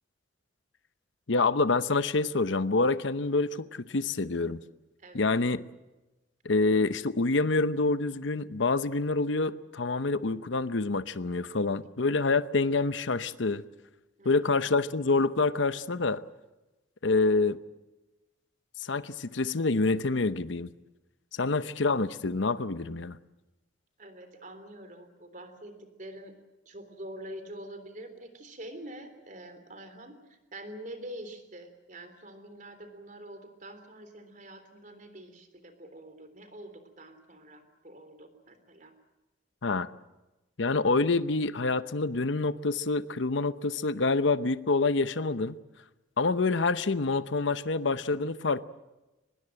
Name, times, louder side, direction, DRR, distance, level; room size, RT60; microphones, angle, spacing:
voice 1, 1.3-4.6 5.1-5.6 6.4-13.6 14.2-16.2 17.0-17.6 18.8-20.7 21.3-23.2 39.6-39.9 40.6-45.5 46.2-48.6, left 3 dB, 75° left, 0.8 m, -27 dB
voice 2, 5.0-5.4 14.2-14.5 24.0-26.4 26.7-38.9, right 1 dB, 40° right, 3.4 m, -46 dB
24.0 x 21.0 x 7.7 m
head